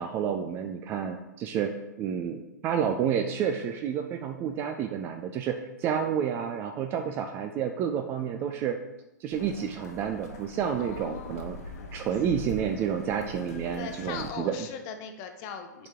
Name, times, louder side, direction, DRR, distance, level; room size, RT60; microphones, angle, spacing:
voice 1, 0.0-1.7 2.0-8.8 9.2-11.6 11.9-14.7, right 8 dB, 20° right, 6 dB, 0.3 m, -30 dB
sound 1, 9.3-14.3, left 2 dB, 50° left, 1.1 m, -43 dB
voice 2, 10.8-11.5 13.7-15.9, left 6 dB, 30° left, 6 dB, 0.7 m, -39 dB
7.1 x 4.2 x 3.6 m, 0.98 s
figure-of-eight pair, 120°, 10 cm